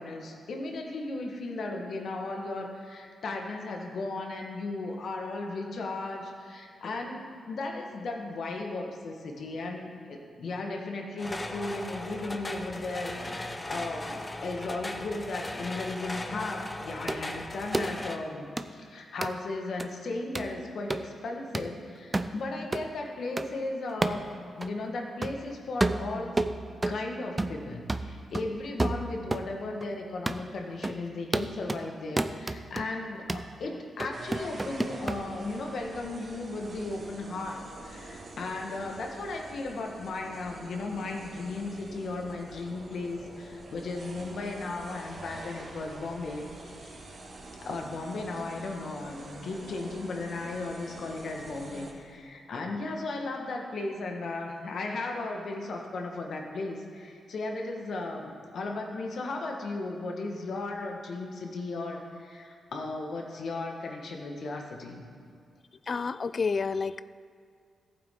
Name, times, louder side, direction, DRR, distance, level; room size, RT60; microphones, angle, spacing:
voice 1, 0.0-26.4 26.9-47.0 47.6-65.0, left 2 dB, 65° left, 2 dB, 1.5 m, -36 dB
sound 1, 11.2-18.2, left 1 dB, 25° left, 0.8 m, -38 dB
sound 2, 17.1-17.2 17.7-17.9 18.6-18.7 19.2-19.3 19.8-19.9 20.4-20.5 20.9-21.1 21.5-21.7 22.1-22.3 22.7-22.9 23.4-23.5 24.0-24.2 24.6-24.7 25.2-25.4 25.8-27.0 27.4-27.6 27.9-29.5 29.8-29.9 30.3-30.4 30.8-31.0 31.3-31.8 32.2-32.9 33.3-33.5 34.0-35.2, right 2 dB, 20° right, 0.5 m, -30 dB
sound 3, 34.1-51.9, right 2 dB, 50° right, 2.0 m, -46 dB
voice 2, 65.9-67.0, left 5 dB, 45° left, 16 dB, 0.3 m, -29 dB
14.5 x 8.5 x 3.8 m, 2.2 s
cardioid pair, 80°, 0 cm